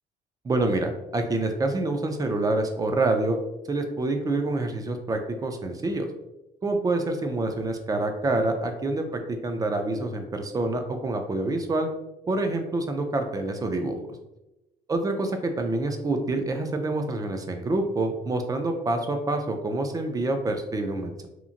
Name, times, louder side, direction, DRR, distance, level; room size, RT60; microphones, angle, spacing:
voice 1, 0.4-3.4 3.7-6.1 6.6-11.9 12.3-14.0 14.9-21.3, right 2 dB, 20° right, 5 dB, 0.4 m, -27 dB
2.9 x 2.5 x 2.4 m, 0.95 s
cardioid pair, 110°, 17 cm